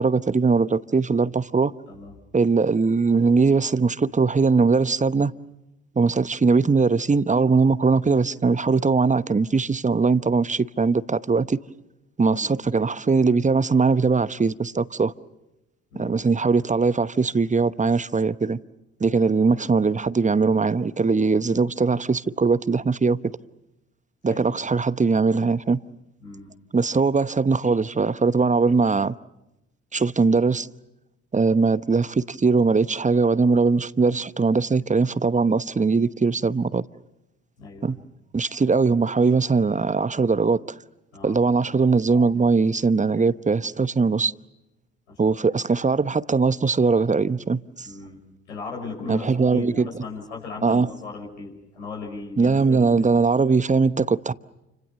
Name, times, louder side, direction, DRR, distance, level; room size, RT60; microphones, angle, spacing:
voice 1, 0.0-1.7 2.3-5.3 6.0-11.6 12.2-15.1 15.9-18.6 19.0-23.2 24.2-25.8 26.7-29.1 29.9-30.7 31.3-36.8 37.8-38.0 38.3-40.6 41.2-44.3 45.2-47.9 49.1-49.9 50.6-50.9 52.4-54.3, right 4 dB, 20° right, 1.0 m, -21 dB
voice 2, 26.2-26.5 37.6-38.0 41.1-41.4 45.1-45.3 47.8-48.2 48.5-53.1, left 4 dB, 85° left, 6.0 m, -37 dB
29.5 x 26.0 x 6.9 m
figure-of-eight pair, 45°, 35 cm